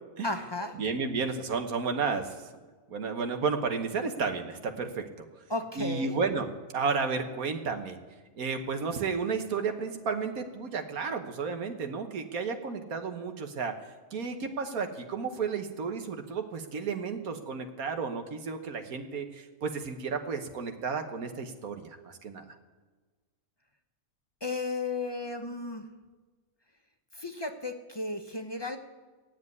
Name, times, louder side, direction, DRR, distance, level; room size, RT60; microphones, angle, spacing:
voice 1, 0.2-0.8 5.5-6.1 24.4-25.8 27.1-28.8, left 3 dB, 20° left, 6 dB, 0.8 m, -34 dB
voice 2, 0.8-2.4 2.9-5.0 5.8-8.0 8.3-13.7 14.1-22.4, right 5 dB, 85° right, 6 dB, 1.7 m, -32 dB
16.5 x 7.7 x 9.5 m, 1.3 s
omnidirectional pair, 1.5 m